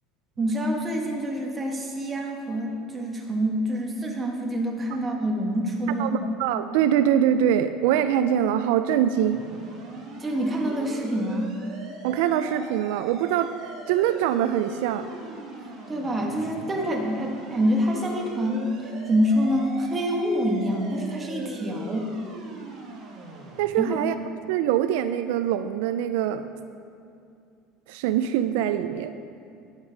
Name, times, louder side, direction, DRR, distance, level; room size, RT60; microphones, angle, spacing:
voice 1, 0.4-6.2 10.2-11.5 15.9-18.7 19.1-22.1 23.8-24.0, equal, 15° right, 0 dB, 1.2 m, -26 dB
voice 2, 6.0-9.4 12.0-13.5 13.9-15.1 23.6-24.2 24.5-26.5 27.9-29.1, right 10 dB, 80° right, 10 dB, 0.4 m, -23 dB
sound 1, 9.2-23.6, right 3 dB, 50° right, 1.8 m, -41 dB
9.6 x 7.2 x 5.0 m, 2.5 s
cardioid pair, 160°, 0 cm